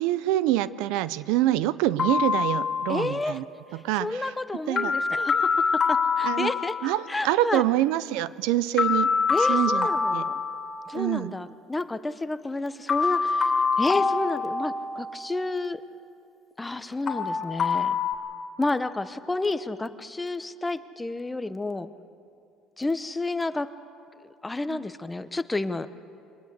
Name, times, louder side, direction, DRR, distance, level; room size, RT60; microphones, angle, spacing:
voice 1, 0.0-3.4 3.8-4.3 4.7-5.0 6.2-6.5 6.8-9.1 9.4-10.3 10.9-11.3 24.7-24.8, right 14 dB, 90° right, 17 dB, 0.6 m, -26 dB
sound 1, 2.0-3.1 4.8-7.1 8.8-11.1 12.9-15.2 17.1-18.1, left 5 dB, 30° left, 3.2 m, -25 dB
voice 2, 2.9-3.4 4.0-6.7 7.1-7.6 9.3-10.4 10.9-15.8 16.6-18.0 18.6-21.9 22.8-23.7 24.4-25.9, left 2 dB, 10° left, 12 dB, 0.7 m, -30 dB
24.0 x 19.5 x 8.1 m, 2.5 s
cardioid pair, 135°, 0 cm